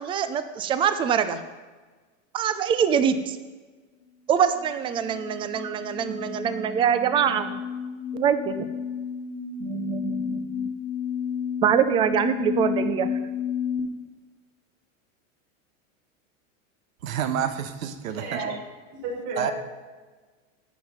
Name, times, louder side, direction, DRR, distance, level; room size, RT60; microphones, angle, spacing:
voice 1, 0.0-1.4 2.3-3.4 4.3-7.6 8.1-8.7 9.6-10.7 11.6-13.1, right 8 dB, 15° right, 11 dB, 0.4 m, -24 dB
sound 1, 4.4-13.8, left 7 dB, 15° left, 1.5 m, -32 dB
voice 2, 17.0-18.6 19.4-19.5, right 9 dB, 85° right, 10 dB, 1.2 m, -29 dB
voice 3, 18.1-18.6 19.0-19.5, right 3 dB, 50° right, -6 dB, 4.4 m, -31 dB
11.0 x 8.8 x 5.4 m, 1.3 s
supercardioid pair, 140°, 40 cm